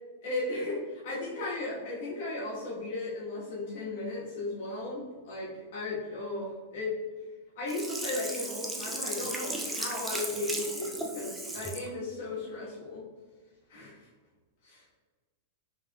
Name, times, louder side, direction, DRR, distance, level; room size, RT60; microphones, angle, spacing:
voice 1, 0.2-7.0 7.5-13.1 13.7-14.1 14.6-14.8, left 2 dB, 65° left, -6 dB, 1.3 m, -36 dB
Sink (filling or washing), 7.7-11.9 12.3-12.4, right 1 dB, 5° right, 0.4 m, -36 dB
4.3 x 3.3 x 2.3 m, 1.4 s
supercardioid pair, 145°, 0 cm